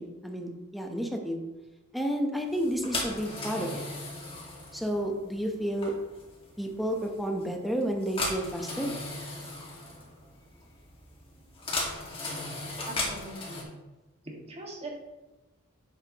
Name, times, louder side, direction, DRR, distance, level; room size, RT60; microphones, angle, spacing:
voice 1, 0.0-1.4 1.9-3.8 4.7-5.9 6.6-8.9, equal, ahead, 2 dB, 1.0 m, -31 dB
sound 1, 2.5-13.6, left 2 dB, 25° left, 2.1 m, -37 dB
voice 2, 12.9-13.7 14.2-14.9, right 1 dB, 30° right, -2 dB, 2.0 m, -41 dB
10.0 x 7.4 x 3.1 m, 1.1 s
head